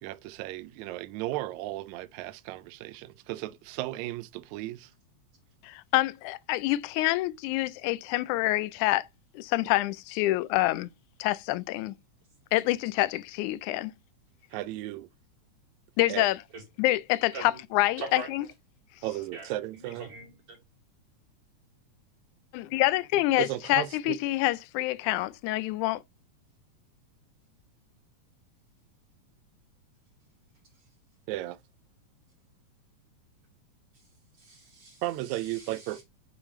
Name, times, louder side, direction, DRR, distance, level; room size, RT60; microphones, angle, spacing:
voice 1, 0.0-4.9 14.5-15.1 16.1-16.3 19.0-20.1 23.4-24.2 31.3-31.6 35.0-36.0, right 16 dB, 80° right, 1.8 m, -35 dB
voice 2, 5.6-9.1 9.4-10.9 11.2-11.9 12.5-13.9 16.0-16.4 16.8-18.5 22.5-26.0, left 17 dB, 90° left, 2.0 m, -27 dB
voice 3, 18.0-18.3 19.3-20.6 34.4-36.0, right 3 dB, 50° right, 3.8 m, -43 dB
7.1 x 4.9 x 3.1 m
omnidirectional pair, 3.4 m